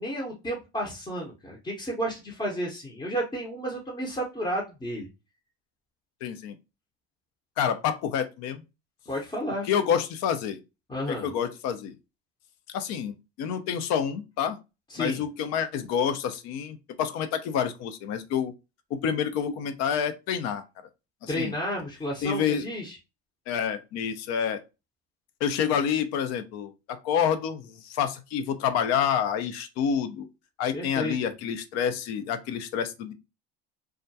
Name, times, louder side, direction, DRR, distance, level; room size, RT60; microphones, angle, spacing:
voice 1, 0.0-5.1 9.1-9.7 10.9-11.3 14.9-15.2 21.3-23.0 30.7-31.1, equal, 15° left, 0.7 m, -32 dB
voice 2, 6.2-6.6 7.6-8.6 9.7-10.6 11.1-11.9 12.7-14.6 15.0-18.5 18.9-20.6 21.2-21.5 22.2-22.6 23.5-24.6 25.4-30.3 30.6-33.1, left 8 dB, 55° left, 0.5 m, -28 dB
2.3 x 2.1 x 2.6 m
hypercardioid pair, 90°, 32 cm